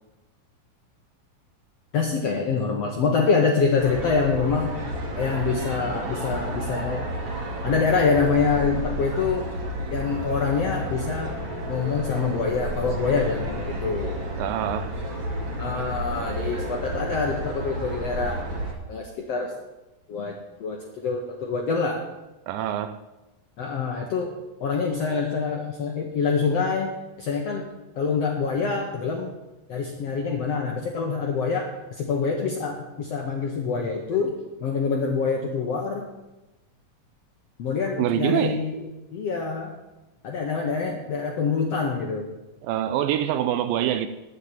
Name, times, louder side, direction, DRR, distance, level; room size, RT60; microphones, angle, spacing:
voice 1, 1.9-7.0 7.6-9.4 9.9-11.4 11.7-14.2 15.6-18.4 18.9-19.5 20.1-22.0 23.6-24.3 24.6-27.6 27.9-29.3 29.7-31.7 32.0-36.1 37.6-38.7 39.1-39.7 40.2-42.3, left 5 dB, 65° left, 1.6 m, -25 dB
Nightlife in Aarhus, 3.8-18.7, right 1 dB, 40° right, 2.3 m, -31 dB
voice 2, 14.4-14.9 22.5-23.0 38.0-38.7 42.6-44.1, right 11 dB, 80° right, 2.1 m, -25 dB
9.8 x 8.2 x 8.9 m
omnidirectional pair, 4.3 m